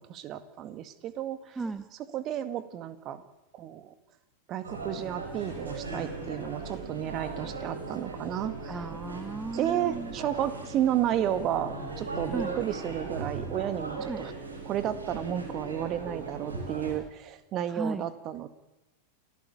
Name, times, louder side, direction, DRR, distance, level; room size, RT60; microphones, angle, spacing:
voice 1, 0.0-1.4 1.9-3.2 3.5-3.9 4.5-8.9 9.5-14.3 14.6-18.5, right 11 dB, 35° right, 13 dB, 1.8 m, -32 dB
sound 1, 4.6-16.9, right 3 dB, 75° right, 6.0 m, -38 dB
voice 2, 8.7-10.1 12.3-12.5 14.1-14.2 17.7-18.0, right 3 dB, 10° right, 12 dB, 1.0 m, -35 dB
28.5 x 14.0 x 8.5 m, 1.0 s
figure-of-eight pair, 90°, 0 cm